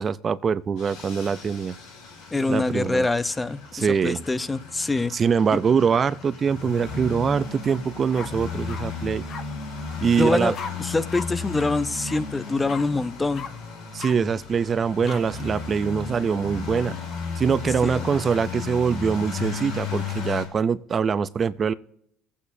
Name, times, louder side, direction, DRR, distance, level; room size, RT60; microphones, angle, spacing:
voice 1, 0.0-1.7 2.5-3.1 3.7-4.2 5.1-9.2 10.0-10.5 13.9-16.9 17.4-21.7, right 6 dB, 40° right, 16 dB, 0.5 m, -23 dB
sound 1, 0.8-20.5, left 5 dB, 85° left, 2.9 m, -35 dB
voice 2, 2.3-5.1 5.5-5.6 10.2-10.5 10.8-13.5 17.8-18.0, left 3 dB, 15° left, 14 dB, 0.6 m, -25 dB
sound 2, 7.6-7.8 8.1-8.8 9.3-9.4 10.5-10.7 11.1-11.3 11.5-11.7 12.0-12.2 12.7-12.8 13.3-13.5 14.0-14.1 15.0-15.2, left 6 dB, 55° left, 1.0 m, -36 dB
20.0 x 8.5 x 2.7 m, 0.72 s
supercardioid pair, 80°, 0 cm